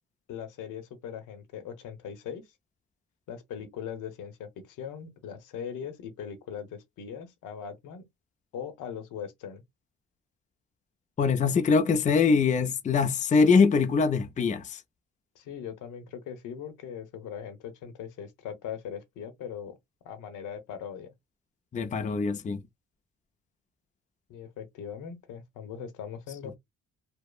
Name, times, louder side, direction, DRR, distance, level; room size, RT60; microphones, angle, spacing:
voice 1, 0.3-2.5 3.3-8.0 8.5-9.6 15.3-19.8 20.0-21.1 24.3-26.6, left 8 dB, 85° left, 0.8 m, -40 dB
voice 2, 11.2-14.8 21.7-22.6, left 5 dB, 25° left, 0.4 m, -23 dB
2.9 x 2.0 x 2.3 m
cardioid pair, 90°, 30 cm